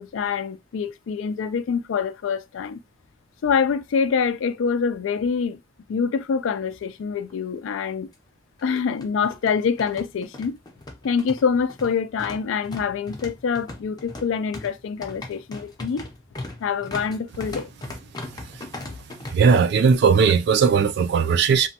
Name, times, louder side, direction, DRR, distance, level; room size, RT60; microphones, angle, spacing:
voice 1, 0.0-2.8 3.4-5.6 5.9-8.1 8.6-10.6 11.0-16.1 16.6-17.7, left 6 dB, 70° left, 0.3 m, -25 dB
sound 1, 7.3-7.4 7.7-7.8 8.6-19.3, left 2 dB, 20° left, 0.6 m, -38 dB
voice 2, 19.3-21.7, right 6 dB, 55° right, 0.3 m, -18 dB
2.9 x 2.2 x 2.8 m
head